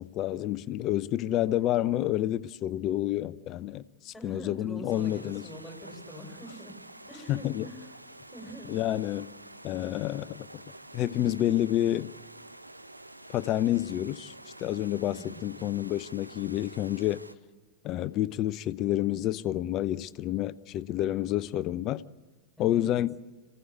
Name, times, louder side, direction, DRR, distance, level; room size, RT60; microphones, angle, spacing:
voice 1, 0.0-5.4 7.3-7.7 8.7-9.3 9.6-10.6 10.9-12.1 13.3-14.3 14.6-17.2 17.8-22.0 22.6-23.2, left 13 dB, 35° left, 0.7 m, -29 dB
voice 2, 4.1-6.7 7.1-8.0 8.3-8.7 15.1-15.8 22.6-23.0, equal, ahead, 5.7 m, -45 dB
sound 1, 4.9-17.3, right 1 dB, 85° right, 0.9 m, -48 dB
27.0 x 16.0 x 8.4 m
figure-of-eight pair, 90°, 0 cm